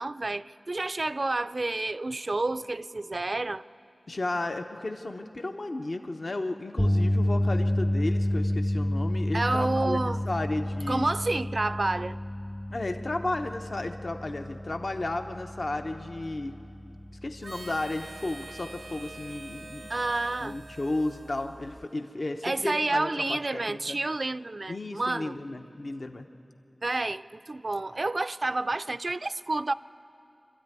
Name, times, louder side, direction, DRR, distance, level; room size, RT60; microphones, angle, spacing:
voice 1, 0.0-3.6 9.3-10.3 10.9-12.2 19.9-20.6 22.4-25.4 26.8-29.7, right 2 dB, 55° right, 14 dB, 0.4 m, -29 dB
voice 2, 4.1-11.1 12.7-16.6 17.2-19.9 20.4-24.0 24.7-26.3, left 2 dB, 65° left, 5 dB, 0.9 m, -33 dB
sound 1, 6.8-19.0 19.4-19.6 21.8-21.9, left 1 dB, 5° left, 0.4 m, -30 dB
Harmonica, 17.4-22.2, right 2 dB, 90° right, 1.1 m, -46 dB
26.0 x 13.5 x 9.6 m, 2.7 s
wide cardioid pair, 50°, 0 cm